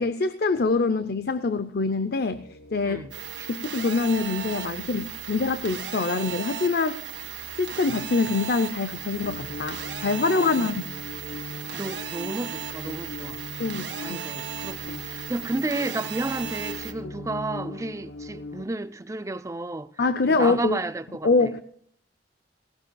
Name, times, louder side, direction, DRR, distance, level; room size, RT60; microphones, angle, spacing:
voice 1, 0.0-2.4 2.7-3.1 3.5-7.0 7.6-10.8 13.6-14.2 17.0-17.1 20.0-20.8 21.2-21.6, left 3 dB, 60° left, 0.6 m, -25 dB
sound 1, 2.3-18.7, left 2 dB, 90° left, 0.8 m, -42 dB
voice 2, 2.9-3.5 10.4-10.7 11.7-13.4 14.0-19.9 20.3-21.5, right 2 dB, 15° right, 0.5 m, -32 dB
sound 2, 3.1-16.9, right 9 dB, 80° right, 1.7 m, -36 dB
18.5 x 18.0 x 2.3 m
head